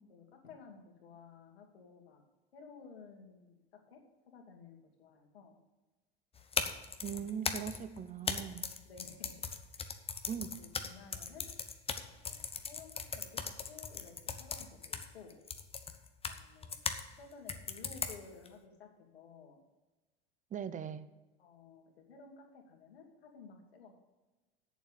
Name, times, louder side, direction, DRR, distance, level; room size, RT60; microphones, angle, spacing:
voice 1, 0.1-2.2 2.5-4.0 4.3-5.6 7.0-7.7 8.8-9.3 9.8-9.9 10.6-11.5 12.3-15.3 16.3-16.8 17.2-19.6 21.4-24.0, left 5 dB, 80° left, 1 dB, 2.5 m, -55 dB
sound 1, 6.4-17.0 17.5-18.5, left 5 dB, 20° left, 0.9 m, -39 dB
voice 2, 7.0-8.6 10.3-10.5 20.5-21.1, right 8 dB, 25° right, 13 dB, 0.8 m, -40 dB
8.3 x 7.2 x 8.1 m, 1.1 s
hypercardioid pair, 95°, 31 cm